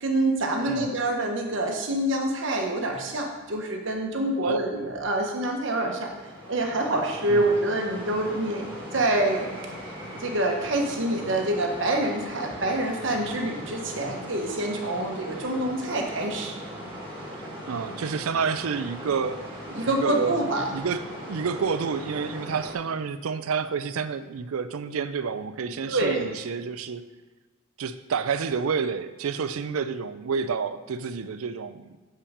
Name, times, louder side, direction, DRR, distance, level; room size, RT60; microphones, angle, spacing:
voice 1, 0.0-6.1 6.5-8.6 8.9-9.5 10.2-16.6 19.7-20.6 25.9-26.2, right 1 dB, 60° right, 2 dB, 1.2 m, -26 dB
voice 2, 0.6-0.9 4.4-4.6 7.3-7.5 17.7-19.5 19.8-20.4 20.7-27.1 27.8-32.0, right 5 dB, 85° right, 13 dB, 0.4 m, -29 dB
sound 1, 6.0-22.8, equal, 25° right, 2.4 m, -39 dB
6.9 x 5.6 x 5.0 m, 1.3 s
head